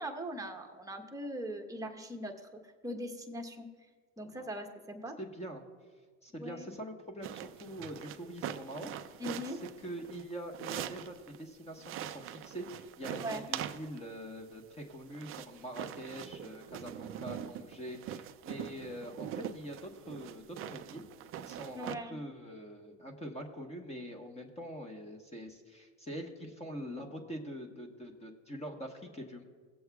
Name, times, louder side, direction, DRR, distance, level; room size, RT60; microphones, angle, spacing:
voice 1, 0.0-2.5 2.8-3.7 4.2-5.2 6.4-6.6 9.2-9.6 13.1-13.4 21.7-22.2, equal, 10° right, 2 dB, 1.0 m, -40 dB
voice 2, 5.2-5.6 6.2-9.2 9.5-21.0 21.4-29.4, equal, 15° left, 3 dB, 1.2 m, -44 dB
sound 1, 7.2-11.4 11.8-14.1 14.8-21.9, right 10 dB, 35° right, 0.4 m, -43 dB
18.5 x 7.7 x 2.3 m, 1.5 s
supercardioid pair, 110°, 41 cm